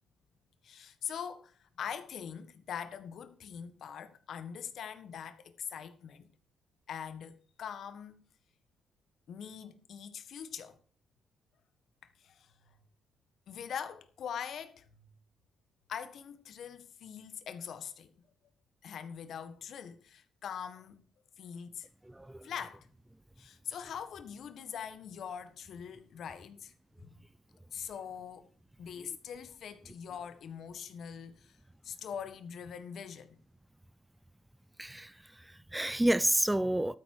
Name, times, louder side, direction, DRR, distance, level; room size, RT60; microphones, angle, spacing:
voice 1, 0.6-6.3 6.9-8.2 9.3-10.8 12.0-12.7 13.5-15.1 15.9-18.1 18.8-21.0 21.4-21.9 22.4-22.9 23.4-26.7 27.0-27.1 27.7-28.5 28.8-31.6 31.8-33.4, left 8 dB, 65° left, 1.6 m, -43 dB
voice 2, 22.0-22.5 34.8-37.0, right 1 dB, 10° right, 0.4 m, -30 dB
12.5 x 9.3 x 4.8 m
cardioid pair, 90°, 0 cm